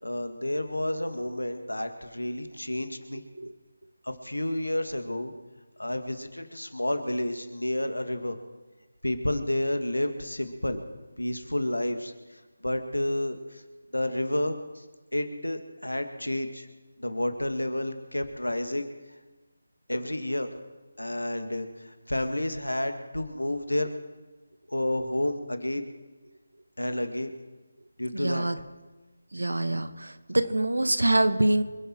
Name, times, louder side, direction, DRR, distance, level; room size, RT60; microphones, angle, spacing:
voice 1, 0.0-3.2 4.0-5.3 5.8-8.4 9.0-10.8 11.2-13.6 13.9-14.8 15.1-16.7 17.0-18.9 19.9-20.5 21.0-23.9 24.7-25.9 26.8-27.3 28.0-28.5, left 1 dB, 85° left, 7 dB, 2.0 m, -30 dB
voice 2, 28.1-28.6 29.3-31.6, right 1 dB, 75° right, 11 dB, 1.3 m, -25 dB
26.0 x 9.9 x 4.6 m, 1.2 s
figure-of-eight pair, 160°, 0 cm